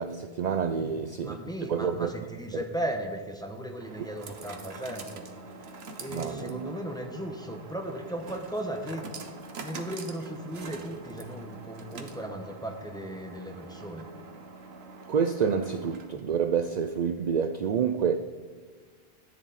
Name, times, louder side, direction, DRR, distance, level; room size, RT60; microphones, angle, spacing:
voice 1, 0.0-1.4 1.7-2.1 6.1-6.7 15.1-18.2, right 6 dB, 55° right, 0.5 m, -28 dB
voice 2, 0.8-5.2 6.0-9.2 9.6-14.1, right 1 dB, 5° left, 1.1 m, -36 dB
sound 1, 2.4-16.4, right 3 dB, 85° right, 1.3 m, -45 dB
14.0 x 9.9 x 4.1 m
omnidirectional pair, 1.0 m